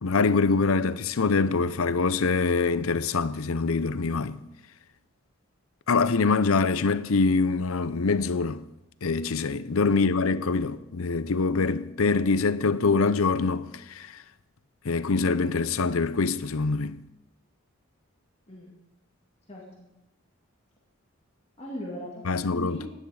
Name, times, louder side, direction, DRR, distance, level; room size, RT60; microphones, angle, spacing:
voice 1, 0.0-4.4 5.9-8.6 9.0-14.1 14.8-17.0 22.2-22.8, left 4 dB, 80° left, 0.7 m, -24 dB
voice 2, 18.5-18.8 19.5-19.9 21.6-22.9, equal, 30° left, 2.1 m, -39 dB
16.5 x 10.5 x 4.9 m
head